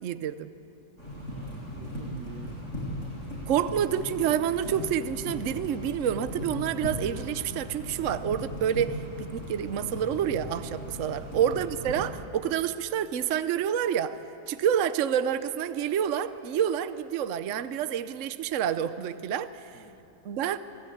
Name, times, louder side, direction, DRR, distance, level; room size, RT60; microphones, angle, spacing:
voice 1, 0.0-0.5 3.5-14.2 14.5-19.8 20.2-20.6, right 9 dB, 60° right, 12 dB, 1.0 m, -28 dB
sound 1, 1.0-12.1, equal, 45° left, 7.6 m, -38 dB
voice 2, 1.3-2.6 11.0-11.3 19.7-20.1, right 6 dB, 85° right, 8 dB, 1.8 m, -47 dB
27.5 x 18.0 x 9.3 m, 2.8 s
omnidirectional pair, 1.7 m